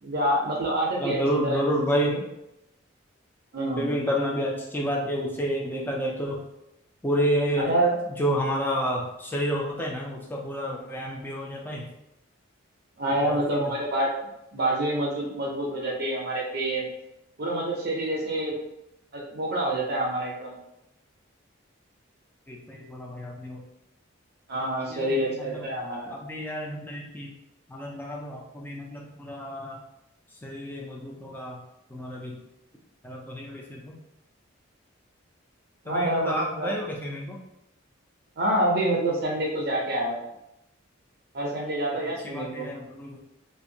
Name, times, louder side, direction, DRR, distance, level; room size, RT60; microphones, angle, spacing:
voice 1, 0.0-1.6 2.1-2.2 3.5-3.9 7.6-7.9 13.0-14.1 14.5-16.9 17.4-18.5 19.1-20.5 24.5-26.1 35.9-36.7 38.4-40.2 41.3-42.7, right 1 dB, 50° right, -2 dB, 0.5 m, -27 dB
voice 2, 1.0-2.2 3.8-6.4 7.0-7.7 8.2-11.8 13.2-13.6 22.5-23.6 24.9-25.6 26.1-27.3 27.7-29.8 30.4-31.6 31.9-32.4 33.0-34.0 35.9-37.4 41.9-43.2, equal, 10° left, -2 dB, 0.3 m, -30 dB
2.5 x 2.1 x 2.6 m, 0.86 s
head